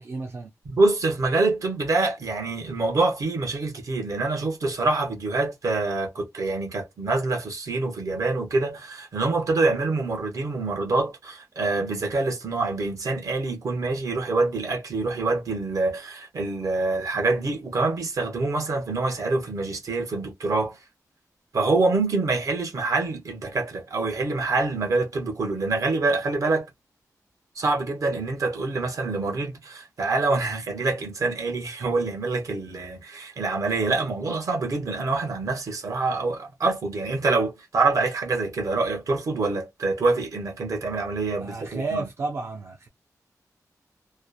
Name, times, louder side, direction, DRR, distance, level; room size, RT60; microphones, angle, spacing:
voice 1, 0.0-0.5 41.4-42.9, right 3 dB, 45° right, 0.5 m, -32 dB
voice 2, 0.7-20.8 21.5-26.7 27.5-42.0, right 3 dB, 60° right, 1.0 m, -26 dB
3.0 x 2.1 x 2.2 m
wide cardioid pair, 140°, 6 cm